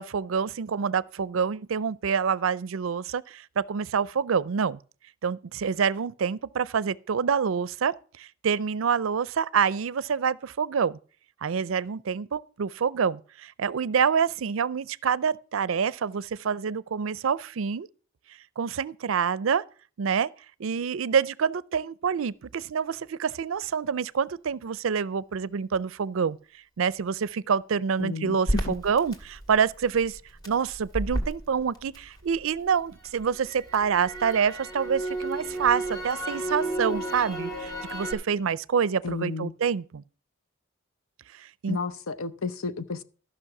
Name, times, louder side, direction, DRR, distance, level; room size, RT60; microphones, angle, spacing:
voice 1, 0.0-4.8 5.2-11.0 11.4-17.9 18.6-19.6 20.0-20.3 20.6-26.4 26.8-30.2 30.5-40.0 41.4-41.8, right 6 dB, 75° right, 0.5 m, -27 dB
voice 2, 28.0-28.4 28.7-28.8 39.0-39.5 41.7-43.0, left 4 dB, 80° left, 0.7 m, -32 dB
Crackle, 28.5-32.6 33.0-38.1, right 1 dB, 20° left, 2.2 m, -32 dB
13.5 x 6.0 x 5.9 m
head